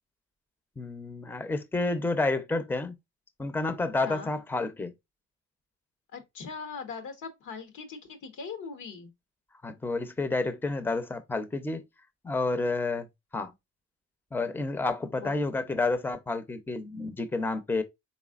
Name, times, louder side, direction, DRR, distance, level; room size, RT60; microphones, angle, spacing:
voice 1, 0.8-3.0 3.4-4.9 9.6-11.8 12.2-13.1 13.3-13.5 14.3-17.8, left 3 dB, 5° left, 0.6 m, -30 dB
voice 2, 6.1-9.1 15.2-15.4, left 5 dB, 80° left, 1.2 m, -40 dB
4.1 x 3.6 x 2.4 m
cardioid pair, 90°, 30 cm